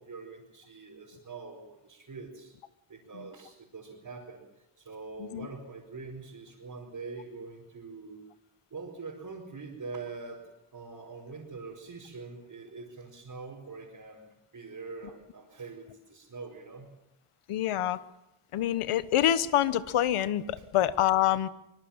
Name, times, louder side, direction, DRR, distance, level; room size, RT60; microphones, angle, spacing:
voice 1, 0.0-2.5 2.9-4.4 4.8-8.3 8.7-14.3 14.5-16.9 20.6-20.7 21.3-21.4, right 4 dB, 40° right, -3 dB, 5.0 m, -44 dB
voice 2, 17.5-18.0 18.5-21.5, left 12 dB, 85° left, 15 dB, 1.2 m, -26 dB
24.5 x 21.5 x 7.4 m, 0.90 s
cardioid pair, 115°, 50 cm